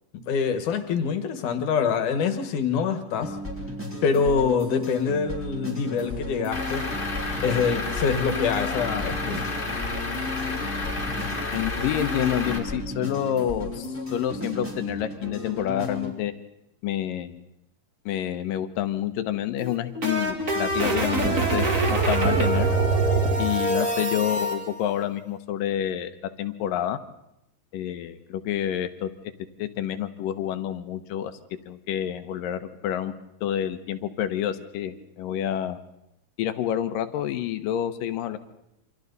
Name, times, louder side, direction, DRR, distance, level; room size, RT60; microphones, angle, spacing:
voice 1, 0.3-3.4 4.0-6.9 7.4-9.5 23.7-23.9, left 6 dB, 65° left, 8 dB, 2.9 m, -25 dB
sound 1, 3.2-16.1, left 2 dB, 5° right, 3.7 m, -34 dB
Truck / Idling, 6.5-12.6, left 3 dB, 15° left, 2.9 m, -31 dB
voice 2, 11.5-16.3 16.8-17.4 18.1-22.7 23.4-27.0 27.7-29.1 29.6-31.3 31.7-33.1 33.4-35.8 36.4-38.4, left 11 dB, 85° left, 10 dB, 2.7 m, -28 dB
sound 2, 19.6-24.5, right 2 dB, 30° right, 1.9 m, -24 dB
28.0 x 26.0 x 4.1 m, 0.84 s
omnidirectional pair, 3.9 m